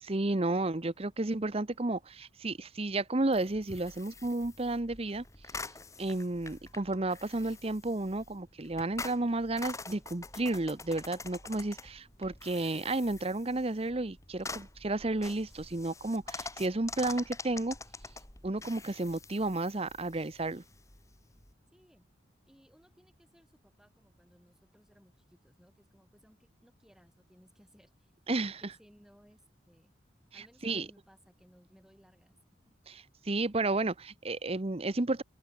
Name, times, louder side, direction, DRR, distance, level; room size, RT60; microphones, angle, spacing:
voice 1, 0.0-5.2 6.0-17.8 18.4-20.6 28.3-28.7 30.6-30.9 32.9-35.2, right 2 dB, 30° right, 0.9 m, -32 dB
sound 1, 3.3-21.5, left 3 dB, 15° left, 2.8 m, -46 dB
voice 2, 21.7-22.1 22.5-28.1 28.4-29.9 30.3-32.4 32.6-32.8, equal, 5° right, 4.6 m, -62 dB
open air
head